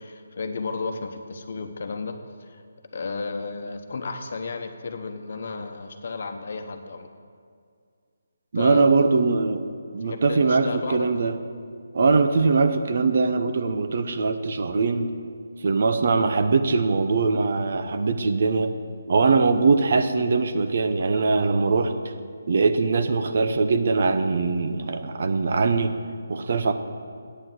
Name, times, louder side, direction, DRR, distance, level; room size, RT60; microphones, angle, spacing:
voice 1, 0.0-2.6 2.9-7.1 8.5-8.9 10.0-11.1, left 4 dB, 55° left, 6 dB, 1.0 m, -33 dB
voice 2, 8.5-9.7 9.9-11.3 11.9-15.1 15.6-18.7 19.1-21.9 22.5-25.9 26.3-26.7, right 4 dB, 55° right, 8 dB, 0.8 m, -21 dB
8.6 x 7.8 x 7.5 m, 2.2 s
figure-of-eight pair, 155°, 0 cm